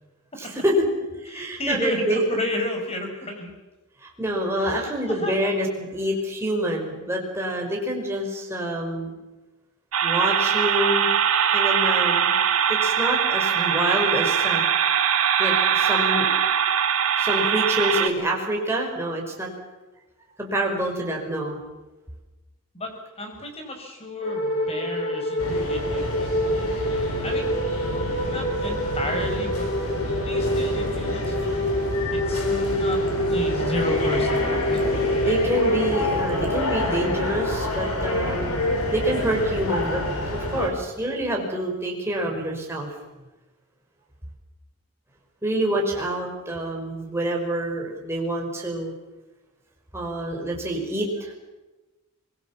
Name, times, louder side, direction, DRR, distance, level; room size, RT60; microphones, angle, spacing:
voice 1, 0.4-0.9 1.2-2.3 4.0-9.1 10.0-11.1 11.5-12.4 12.7-14.6 15.4-16.3 17.2-19.5 20.4-21.6 35.2-38.5 38.9-40.0 40.3-42.9 45.4-48.9 49.9-51.3, right 1 dB, 10° right, -1 dB, 5.4 m, -27 dB
voice 2, 1.3-3.5 4.5-5.5 22.7-22.9 23.2-26.4 27.2-27.5 28.2-29.7 30.2-31.6 32.1-33.0 33.3-34.4 34.7-34.8 35.1-35.6, left 1 dB, 25° left, 4 dB, 5.8 m, -32 dB
sound 1, 9.9-18.1, right 8 dB, 75° right, 2.2 m, -21 dB
sound 2, 24.2-39.9, equal, 60° left, 7.2 m, -27 dB
sound 3, 25.4-40.7, left 1 dB, 85° left, 6.0 m, -28 dB
25.5 x 21.5 x 7.3 m, 1.1 s
head